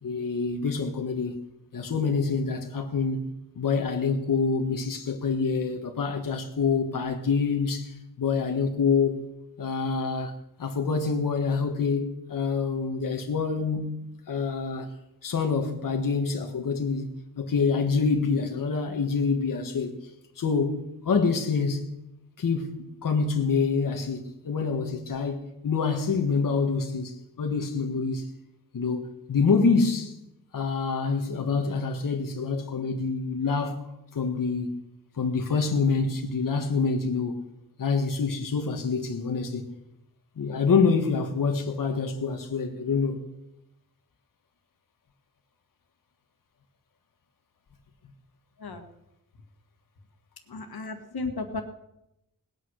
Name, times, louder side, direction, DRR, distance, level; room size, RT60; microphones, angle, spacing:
voice 1, 0.0-1.4 1.7-3.3 3.5-9.2 9.6-14.9 15.2-17.1 17.4-20.0 20.4-21.9 22.4-28.3 28.7-30.2 30.5-34.8 35.1-37.4 37.8-39.6 40.4-43.2, left 5 dB, 60° left, 1.6 m, -26 dB
voice 2, 50.5-51.6, left 3 dB, 90° left, 1.8 m, -34 dB
19.0 x 9.3 x 6.4 m
wide cardioid pair, 175°, 36 cm